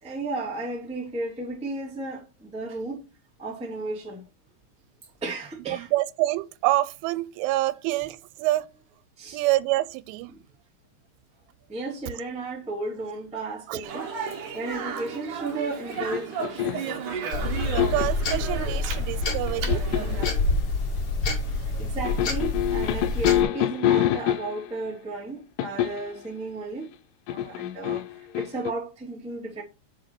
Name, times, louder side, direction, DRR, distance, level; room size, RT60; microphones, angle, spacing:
voice 1, 0.0-3.0 3.4-4.2 5.2-5.9 9.2-9.4 10.3-10.4 11.7-14.1 14.5-16.9 18.8-19.0 19.4-19.5 21.5-26.9 27.3-29.6, right 2 dB, 5° right, 1.0 m, -34 dB
voice 2, 5.7-8.7 9.3-10.3 13.7-13.9 17.7-19.9, right 17 dB, 85° right, 3.0 m, -27 dB
Speech, 13.8-20.3, right 6 dB, 65° right, 2.0 m, -34 dB
sound 1, 15.9-17.0 17.6-18.2 19.2-20.5 22.1-24.8 25.6-26.2 27.3-28.7, left 12 dB, 85° left, 2.3 m, -26 dB
sound 2, 17.3-23.4, left 2 dB, 45° left, 2.0 m, -27 dB
7.1 x 4.9 x 6.0 m
omnidirectional pair, 5.5 m